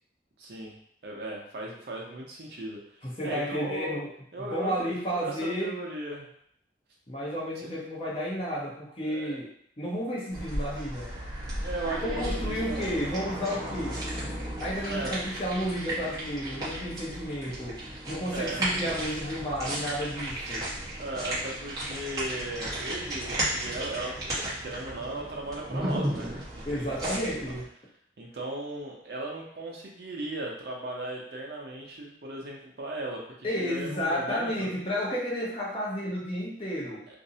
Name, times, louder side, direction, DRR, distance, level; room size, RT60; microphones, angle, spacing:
voice 1, 0.4-0.7 1.0-2.8 3.2-4.0 4.3-6.3 7.6-7.7 9.0-9.4 11.6-13.0 14.9-15.1 18.3-18.7 21.0-27.0 27.4-27.5 28.2-34.7, right 2 dB, 65° right, -1 dB, 0.6 m, -37 dB
voice 2, 3.0-4.1 4.4-5.8 7.1-9.5 9.8-11.1 12.0-14.0 14.6-20.7 26.6-27.6 33.4-37.1, equal, 30° left, -5 dB, 0.7 m, -32 dB
sound 1, 10.3-27.6, right 1 dB, 20° right, 0.7 m, -34 dB
2.5 x 2.0 x 2.7 m, 0.67 s
head